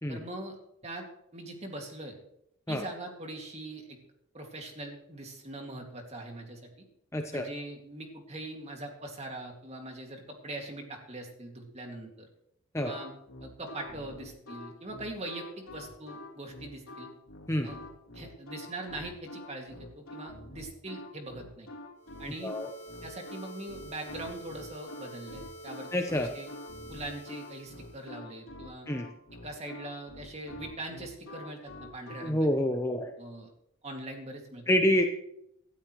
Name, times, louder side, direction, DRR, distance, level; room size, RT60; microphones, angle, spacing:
voice 1, 0.1-0.6 0.8-1.1 1.3-2.1 2.7-4.0 4.3-6.7 7.3-12.3 12.8-13.1 13.4-17.1 17.6-17.8 18.1-21.7 22.2-22.5 23.0-26.5 26.9-28.9 29.4-32.5 33.2-33.5 33.8-34.6, right 2 dB, 30° right, 2 dB, 2.4 m, -42 dB
voice 2, 7.1-7.5 12.7-12.9 17.5-17.7 22.4-22.7 25.9-26.3 28.9-29.1 32.2-33.1 34.7-35.0, equal, 15° left, 4 dB, 0.9 m, -27 dB
sound 1, 12.9-32.3, left 2 dB, 80° left, 3.2 m, -46 dB
sound 2, 22.0-28.2, right 1 dB, 30° left, 1.4 m, -48 dB
18.0 x 12.5 x 3.2 m, 0.76 s
head